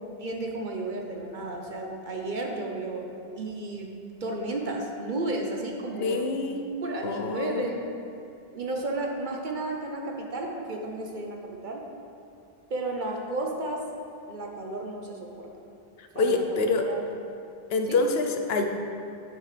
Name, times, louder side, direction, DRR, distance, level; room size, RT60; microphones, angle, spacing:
voice 1, 0.2-3.1 3.4-3.9 4.2-6.3 6.8-7.9 8.5-11.9 12.7-13.9 14.3-15.5 16.1-17.0 17.9-18.0, right 2 dB, 50° right, 1 dB, 1.0 m, -33 dB
voice 2, 6.0-6.6 7.0-7.7 16.0-16.9 17.7-18.7, left 3 dB, 80° left, 4 dB, 0.9 m, -26 dB
9.6 x 6.8 x 3.3 m, 2.6 s
omnidirectional pair, 1.0 m